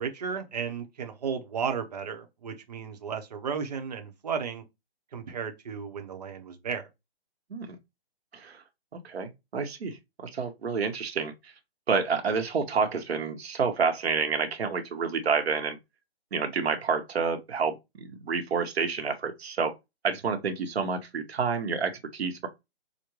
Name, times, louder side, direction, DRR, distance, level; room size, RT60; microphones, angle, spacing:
voice 1, 0.0-4.6 5.1-6.9, right 6 dB, 40° right, 0.8 m, -34 dB
voice 2, 9.0-11.3 11.9-15.8 16.3-19.7 20.0-22.5, right 5 dB, 80° right, 1.0 m, -29 dB
5.0 x 2.1 x 3.0 m
hypercardioid pair, 170°, 31 cm